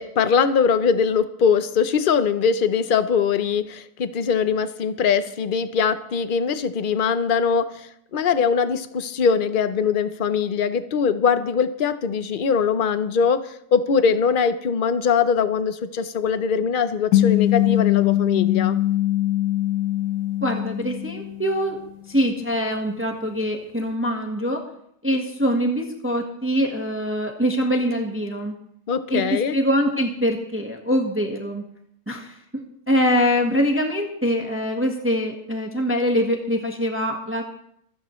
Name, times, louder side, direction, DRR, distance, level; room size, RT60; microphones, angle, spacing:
voice 1, 0.0-18.8 28.9-29.5, left 6 dB, 50° left, 11 dB, 0.7 m, -22 dB
sound 1, 17.1-21.8, left 14 dB, 80° left, 1.3 m, -22 dB
voice 2, 20.4-21.8 22.1-24.6 25.0-28.5 29.1-31.6 32.1-37.4, equal, 10° right, 2 dB, 1.3 m, -23 dB
26.0 x 9.8 x 3.1 m, 0.73 s
omnidirectional pair, 1.6 m